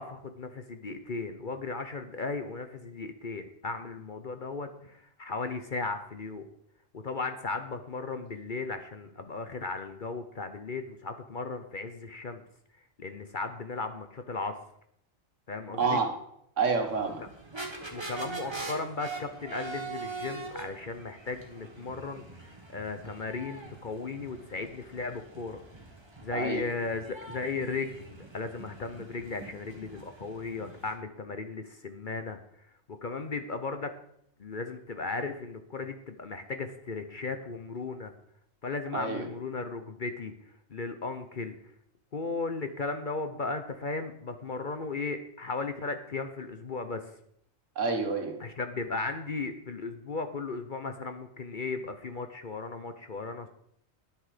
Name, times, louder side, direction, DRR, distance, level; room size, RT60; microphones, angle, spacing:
voice 1, 0.0-6.5 6.9-12.4 13.0-14.5 15.5-16.0 17.2-17.3 17.9-25.6 26.2-32.4 32.9-33.9 34.4-38.1 38.6-40.3 40.7-41.6 42.1-47.0 48.4-53.5, left 3 dB, 45° left, 8 dB, 0.9 m, -36 dB
voice 2, 15.7-16.1 16.6-17.2 26.3-26.6 38.9-39.3 47.8-48.4, right 4 dB, 70° right, 5 dB, 1.9 m, -28 dB
sound 1, 16.7-30.9, right 3 dB, 20° right, 1.7 m, -43 dB
10.5 x 9.7 x 5.0 m, 0.72 s
omnidirectional pair, 1.4 m